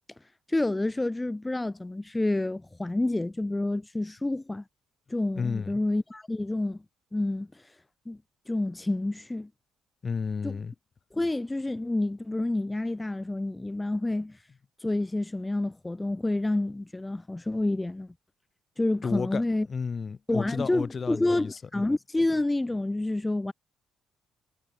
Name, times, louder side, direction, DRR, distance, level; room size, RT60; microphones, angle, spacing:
voice 1, 0.5-4.6 5.1-6.8 7.1-7.6 8.1-8.2 8.5-9.5 10.4-10.6 11.1-14.4 14.8-18.1 18.8-19.7 20.3-23.5, left 2 dB, 10° left, 0.9 m, -28 dB
voice 2, 5.4-5.8 10.0-10.7 19.0-19.4 19.7-21.9, left 5 dB, 35° left, 1.2 m, -32 dB
cardioid pair, 105°, 0 cm